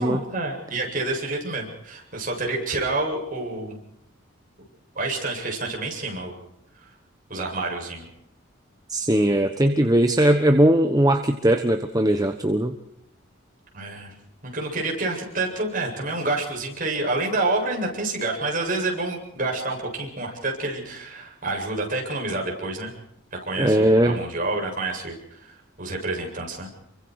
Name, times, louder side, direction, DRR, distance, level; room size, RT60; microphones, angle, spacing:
voice 1, 0.0-3.8 4.9-6.3 6.8-6.9 7.3-8.1 13.7-14.1 14.4-22.9 23.3-26.7, right 2 dB, 40° right, 0 dB, 8.0 m, -28 dB
voice 2, 8.9-12.7 23.6-24.2, right 1 dB, 20° right, 6 dB, 1.1 m, -19 dB
29.0 x 24.0 x 4.9 m, 0.80 s
head